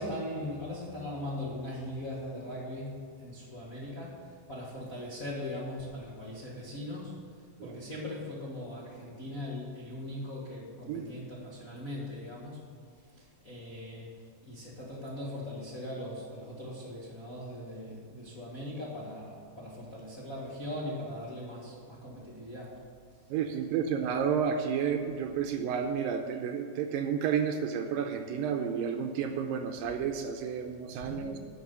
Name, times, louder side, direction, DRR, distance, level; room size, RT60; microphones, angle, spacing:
voice 1, 0.0-7.2 7.6-12.7 13.1-22.8 30.9-31.4, left 1 dB, 40° left, -6 dB, 1.2 m, -40 dB
voice 2, 23.3-31.4, right 7 dB, 80° right, 5 dB, 2.2 m, -31 dB
12.0 x 6.0 x 8.1 m, 2.3 s
omnidirectional pair, 4.3 m